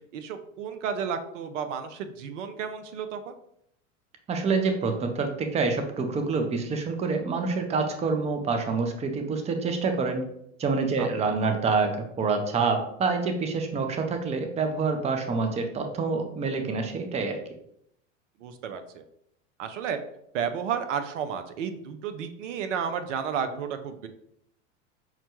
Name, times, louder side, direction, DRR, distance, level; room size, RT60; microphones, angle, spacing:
voice 1, 0.1-3.3 11.0-11.4 18.4-19.0 19.6-20.0 20.3-24.1, right 7 dB, 70° right, 9 dB, 0.6 m, -32 dB
voice 2, 4.3-10.2 10.6-17.4, right 4 dB, 15° right, 5 dB, 0.5 m, -27 dB
5.7 x 2.2 x 3.0 m, 0.74 s
hypercardioid pair, 95°, 38 cm